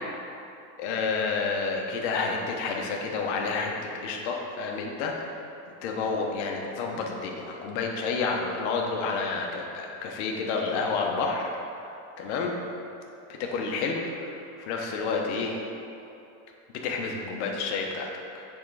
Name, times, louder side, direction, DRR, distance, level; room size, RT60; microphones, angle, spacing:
voice 1, 0.8-5.4 5.8-11.5 12.2-12.5 13.3-15.6 16.8-18.4, left 4 dB, 60° left, 0 dB, 1.0 m, -30 dB
7.6 x 3.9 x 4.7 m, 2.8 s
cardioid pair, 175°, 38 cm